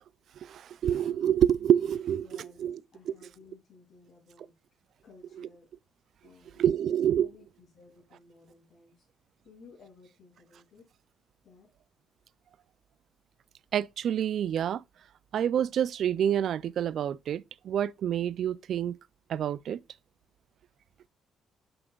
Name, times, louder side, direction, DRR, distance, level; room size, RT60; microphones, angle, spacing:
voice 1, 0.5-2.3 2.6-2.8 5.4-5.5 6.6-7.3 13.7-14.8 15.3-18.9 19.3-19.8, right 10 dB, 60° right, 0.3 m, -27 dB
voice 2, 2.2-4.5 5.0-5.7 6.2-6.6 7.2-9.0 9.4-10.8 11.4-11.7, left 4 dB, 55° left, 3.2 m, -56 dB
7.7 x 6.2 x 2.3 m
cardioid pair, 130°, 0 cm